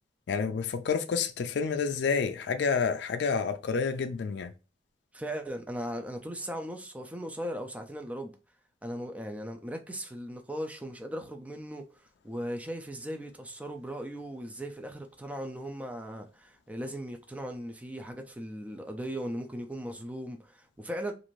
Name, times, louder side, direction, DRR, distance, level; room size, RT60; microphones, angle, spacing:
voice 1, 0.3-4.5, left 5 dB, 65° left, 0.4 m, -29 dB
voice 2, 5.1-8.3 8.8-11.8 12.2-21.1, equal, 10° right, 0.4 m, -38 dB
2.5 x 2.5 x 3.0 m
head